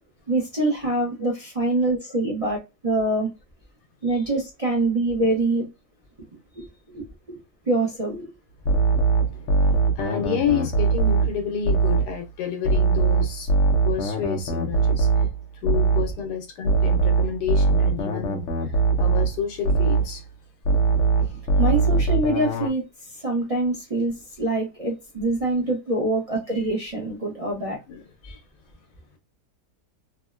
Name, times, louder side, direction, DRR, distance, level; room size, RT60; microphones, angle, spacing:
voice 1, 0.3-2.6 2.8-3.3 4.0-5.7 6.6-7.4 7.7-8.3 15.7-15.8 21.6-22.8 23.2-27.8, right 2 dB, 35° right, 0.5 m, -25 dB
sound 1, 8.7-12.2 12.7-16.2 16.7-20.2 20.7-22.7, right 4 dB, 60° left, 0.9 m, -21 dB
voice 2, 9.3-13.5 13.8-15.1 15.6-20.2 25.6-25.7 27.9-28.4, left 7 dB, 80° left, 1.3 m, -30 dB
3.5 x 2.1 x 2.3 m
omnidirectional pair, 1.8 m